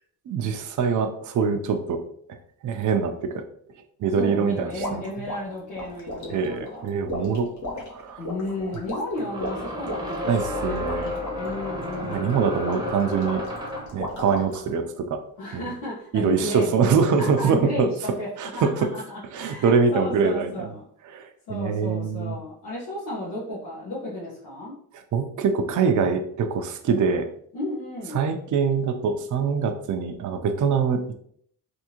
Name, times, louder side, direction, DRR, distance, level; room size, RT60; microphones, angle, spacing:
voice 1, 0.3-2.0 2.6-3.4 4.0-5.0 6.3-7.5 7.9-8.2 10.3-11.1 12.0-13.4 13.9-15.2 15.5-15.7 16.1-17.9 18.4-18.9 19.3-20.7 21.1-22.4 25.1-27.3 28.1-31.1, right 5 dB, 50° right, 6 dB, 0.5 m, -24 dB
voice 2, 4.0-6.9 8.2-10.9 11.4-12.4 15.4-18.3 18.5-20.8 21.5-24.7 27.5-28.3, left 1 dB, 85° left, -8 dB, 1.2 m, -33 dB
sound 1, 4.8-14.7, left 1 dB, 45° left, 1.0 m, -35 dB
sound 2, 7.2-7.3 9.2-14.0, left 1 dB, 10° right, 0.8 m, -32 dB
3.5 x 2.6 x 2.9 m, 0.65 s
cardioid pair, 95°, 39 cm